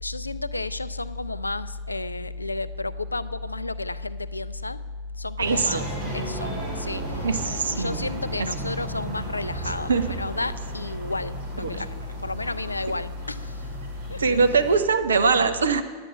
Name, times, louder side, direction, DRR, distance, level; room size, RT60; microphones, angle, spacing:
voice 1, 0.0-4.8 5.2-7.3 7.7-13.7 14.1-14.4, left 2 dB, 80° left, 15 dB, 0.3 m, -31 dB
sound 1, 5.4-14.8, right 2 dB, 55° right, 2.6 m, -35 dB
voice 2, 5.4-5.9 7.2-8.0 9.9-10.0 11.6-11.7 14.2-15.8, right 4 dB, 70° right, 9 dB, 0.7 m, -22 dB
9.7 x 9.1 x 5.8 m, 1.5 s
figure-of-eight pair, 90°, 0 cm